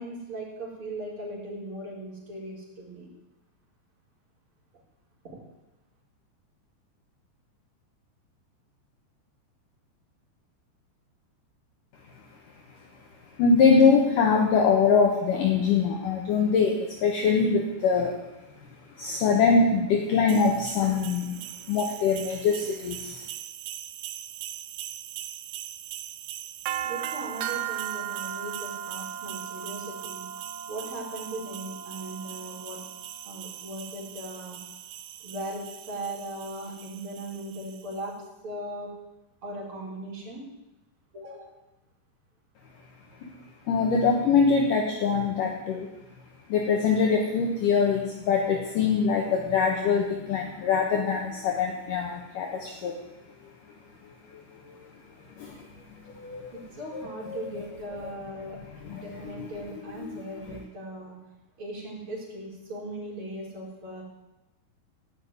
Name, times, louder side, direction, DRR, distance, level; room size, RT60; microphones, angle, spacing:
voice 1, 0.0-3.1 5.2-5.4 26.8-30.2 30.7-32.8 33.2-34.6 35.2-38.1 38.4-38.9 39.4-40.4 41.1-41.5 56.5-58.6 58.9-61.2 61.6-64.0, right 1 dB, 30° right, -5 dB, 5.0 m, -38 dB
voice 2, 13.4-18.2 18.9-21.4 21.7-23.3 43.2-43.3 43.7-45.9 46.5-53.0 54.3-54.9 55.4-55.7 56.0-56.6 56.9-57.4 58.8-59.5 60.0-60.2, left 5 dB, 65° left, 0 dB, 2.4 m, -24 dB
sound 1, 20.3-38.0, right 11 dB, 80° right, 3.0 m, -38 dB
17.5 x 5.9 x 9.6 m, 1.0 s
omnidirectional pair, 5.3 m